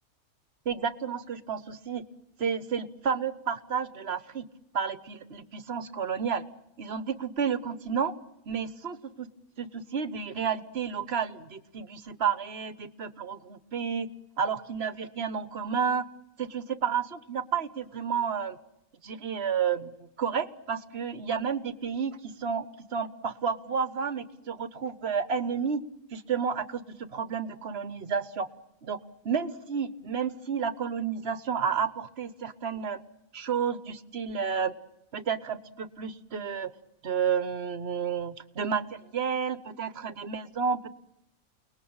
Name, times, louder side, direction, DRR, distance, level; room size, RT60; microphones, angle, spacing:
voice 1, 0.6-2.0 2.4-4.5 4.7-6.4 6.8-8.1 8.5-9.3 9.6-14.1 14.4-16.1 16.4-18.6 19.0-22.7 22.9-25.8 26.1-26.8 27.1-28.5 28.8-29.0 29.2-33.0 33.3-34.7 35.1-36.7 37.0-40.9, right 6 dB, 45° right, 13 dB, 1.4 m, -31 dB
29.5 x 20.0 x 8.9 m, 0.88 s
omnidirectional pair, 1.5 m